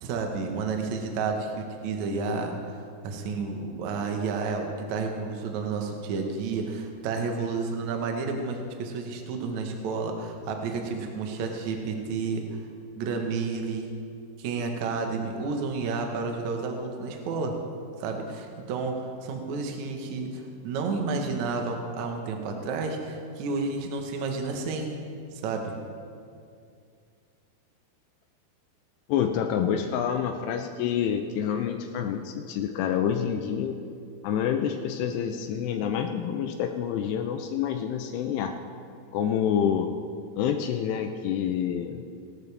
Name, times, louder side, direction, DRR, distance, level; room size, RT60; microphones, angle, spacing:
voice 1, 0.0-2.6 3.0-12.4 13.0-13.9 14.4-17.5 18.0-24.9 25.3-25.8, right 4 dB, 70° right, 3 dB, 1.8 m, -31 dB
voice 2, 29.1-33.8 34.2-38.5 39.1-39.9 40.4-42.0, left 8 dB, 85° left, 5 dB, 2.7 m, -27 dB
18.0 x 12.0 x 3.4 m, 2.4 s
omnidirectional pair, 4.8 m